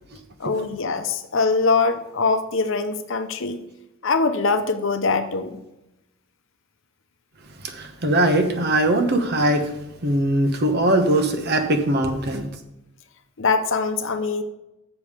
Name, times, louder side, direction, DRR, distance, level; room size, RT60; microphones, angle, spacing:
voice 1, 0.4-3.6 4.0-5.6 13.4-14.4, left 4 dB, 65° left, 8 dB, 0.8 m, -22 dB
voice 2, 7.6-9.7 10.0-12.5, right 1 dB, 50° right, 6 dB, 1.1 m, -21 dB
7.1 x 5.3 x 6.6 m, 0.91 s
head